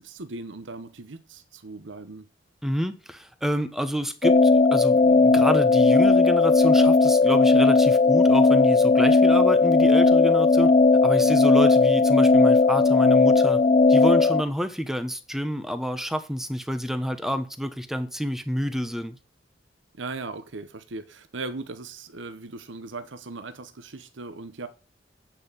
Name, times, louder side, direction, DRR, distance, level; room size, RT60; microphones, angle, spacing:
voice 1, 0.0-2.3 11.2-11.4 20.0-24.7, right 3 dB, 75° right, 1.0 m, -38 dB
voice 2, 2.6-10.7 11.0-13.6 13.9-19.2, equal, ahead, 1.1 m, -28 dB
sound 1, 4.2-14.4, left 3 dB, 35° left, 0.4 m, -17 dB
8.8 x 5.9 x 8.2 m
head